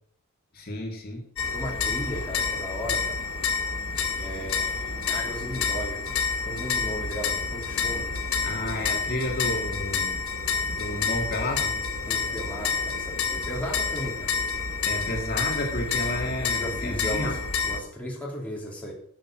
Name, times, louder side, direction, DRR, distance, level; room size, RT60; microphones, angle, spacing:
voice 1, 0.5-1.3 8.4-10.2 10.6-11.8 14.8-17.4, left 1 dB, 45° left, 0 dB, 2.3 m, -31 dB
sound 1, 1.4-17.8, left 5 dB, 75° left, 2.5 m, -29 dB
voice 2, 1.5-3.2 4.1-8.2 12.0-14.3 16.5-18.9, equal, 5° left, -3 dB, 2.9 m, -36 dB
12.5 x 6.5 x 6.2 m, 0.66 s
head